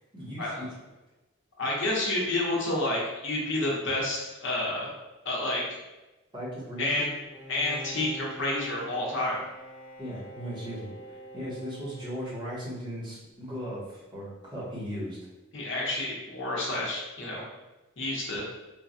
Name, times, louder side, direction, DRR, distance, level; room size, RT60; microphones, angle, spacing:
voice 1, 0.1-0.7 6.3-7.1 10.0-10.9 11.3-15.2, equal, 20° right, -9 dB, 1.0 m, -37 dB
voice 2, 1.6-4.9 5.2-5.6 6.8-7.1 7.5-9.4 15.5-17.4 18.0-18.4, left 1 dB, 60° left, -3 dB, 0.7 m, -29 dB
Bowed string instrument, 7.3-12.9, equal, 5° right, 0.5 m, -45 dB
3.2 x 2.2 x 2.6 m, 1.1 s
head